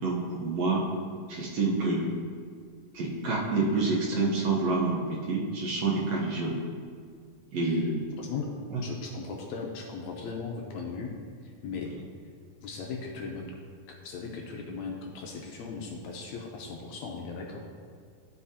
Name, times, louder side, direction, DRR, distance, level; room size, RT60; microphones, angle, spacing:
voice 1, 0.0-0.8 1.3-2.0 2.9-6.6 7.5-8.1 8.7-8.8, right 3 dB, 65° right, -3 dB, 1.9 m, -28 dB
voice 2, 8.2-8.5 8.8-11.1 11.4-11.9 12.6-13.6 13.9-17.6, left 5 dB, 75° left, 0 dB, 1.8 m, -38 dB
12.5 x 5.0 x 2.8 m, 2.1 s
omnidirectional pair, 3.6 m